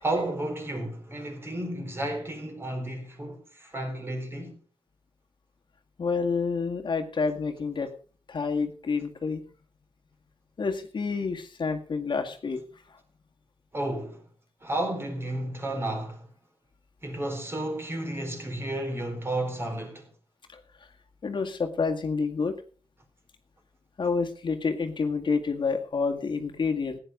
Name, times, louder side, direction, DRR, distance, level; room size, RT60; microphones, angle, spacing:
voice 1, 0.0-4.6 13.7-14.2 14.6-16.3 17.0-20.1, right 1 dB, 25° right, 4.1 m, -32 dB
voice 2, 6.0-7.9 8.3-9.4 10.6-12.6 20.5-20.6 21.2-22.6 24.0-27.0, left 4 dB, 50° left, 1.9 m, -28 dB
15.5 x 9.8 x 5.3 m
wide cardioid pair, 135°, 10 cm